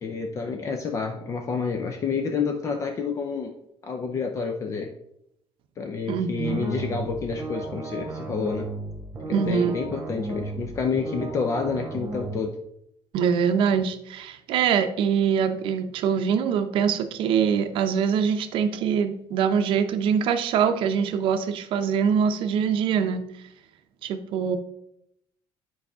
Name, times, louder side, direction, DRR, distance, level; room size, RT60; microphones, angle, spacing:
voice 1, 0.0-3.5 3.8-4.9 5.8-8.7 9.3-12.5, left 5 dB, 30° left, 4 dB, 0.5 m, -29 dB
voice 2, 6.1-6.7 9.3-9.8 13.1-23.3 24.0-24.6, right 7 dB, 65° right, 8 dB, 0.6 m, -23 dB
sound 1, 6.4-12.4, right 3 dB, 30° right, 1.4 m, -35 dB
8.5 x 4.8 x 3.6 m, 0.79 s
cardioid pair, 160°, 10 cm